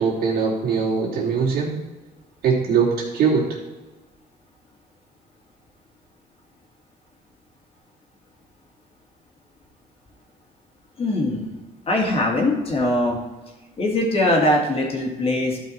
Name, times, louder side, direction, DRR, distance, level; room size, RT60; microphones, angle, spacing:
voice 1, 0.0-1.7 2.4-3.5, right 5 dB, 65° right, -4 dB, 3.2 m, -21 dB
voice 2, 11.0-11.4 11.9-13.2 13.8-15.6, left 1 dB, 35° left, -1 dB, 2.6 m, -21 dB
12.5 x 5.5 x 4.4 m, 1.1 s
cardioid pair, 110°, 17 cm